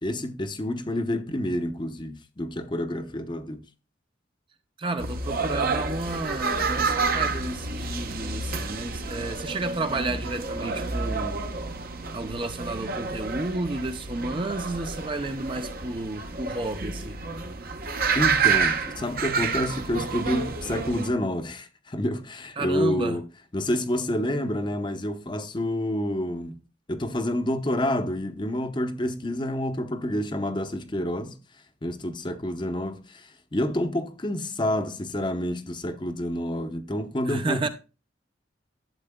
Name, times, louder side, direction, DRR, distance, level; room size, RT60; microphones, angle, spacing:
voice 1, 0.0-3.6 18.1-23.2 23.5-26.6 26.9-31.4 31.8-37.7, left 1 dB, 25° left, 0.7 m, -28 dB
voice 2, 4.8-11.4 12.1-17.2 22.6-23.2 37.3-37.7, right 2 dB, 25° right, 0.6 m, -31 dB
sound 1, 5.0-21.1, right 4 dB, 50° right, 1.0 m, -29 dB
12.0 x 8.1 x 2.2 m
head